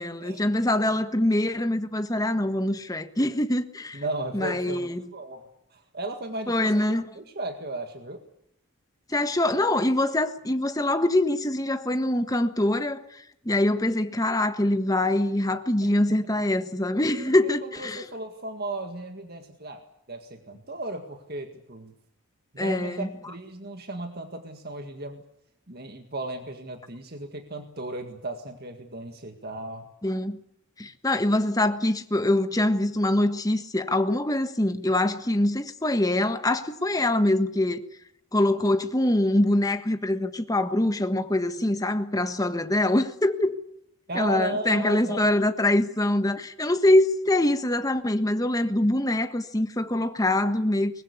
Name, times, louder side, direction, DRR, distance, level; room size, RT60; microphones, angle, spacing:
voice 1, 0.0-4.0 4.3-5.0 6.5-7.0 9.1-18.0 22.6-23.1 30.0-30.4 30.8-37.8 38.3-43.6 44.1-51.0, left 1 dB, 15° left, 1.4 m, -24 dB
voice 2, 3.9-8.2 15.8-16.2 17.4-21.9 22.5-25.2 25.7-29.9 44.1-45.4, right 2 dB, 45° right, 1.9 m, -35 dB
23.0 x 21.0 x 8.4 m
head